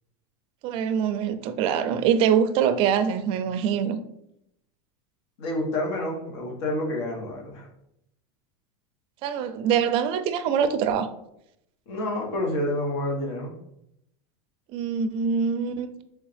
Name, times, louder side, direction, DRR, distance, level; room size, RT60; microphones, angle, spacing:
voice 1, 0.6-4.0 9.2-11.1 14.7-15.9, right 7 dB, 40° right, 10 dB, 0.4 m, -24 dB
voice 2, 5.4-7.7 11.9-13.5, left 1 dB, 75° left, 1 dB, 1.3 m, -28 dB
3.5 x 3.2 x 3.3 m, 0.78 s
supercardioid pair, 150°, 14 cm